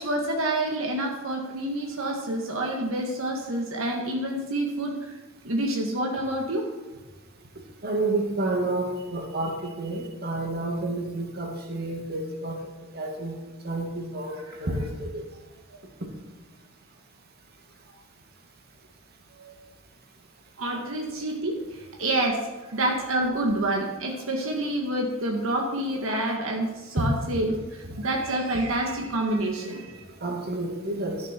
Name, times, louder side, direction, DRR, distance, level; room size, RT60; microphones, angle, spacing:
voice 1, 0.0-5.1 5.4-6.7 14.3-14.6 19.4-19.6 20.6-22.4 22.7-30.1, right 1 dB, 75° right, 0 dB, 1.9 m, -28 dB
voice 2, 7.8-12.6 12.9-13.3 13.6-14.3 14.6-15.2 27.0-27.1 30.2-31.3, right 2 dB, 50° right, 1 dB, 2.4 m, -29 dB
13.0 x 11.0 x 4.6 m, 1.2 s
head